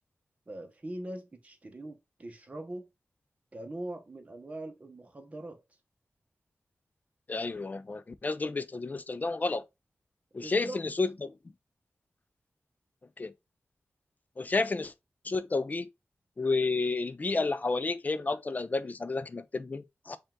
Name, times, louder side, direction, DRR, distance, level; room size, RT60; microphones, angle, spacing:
voice 1, 0.5-2.9 3.5-5.6 10.3-10.8, right 1 dB, 30° right, 1.0 m, -42 dB
voice 2, 7.3-9.6 10.3-11.3 13.2-13.3 14.4-14.9 15.2-15.9 16.4-20.2, left 3 dB, 35° left, 0.5 m, -31 dB
5.2 x 2.5 x 3.6 m
wide cardioid pair, 125°, 5 cm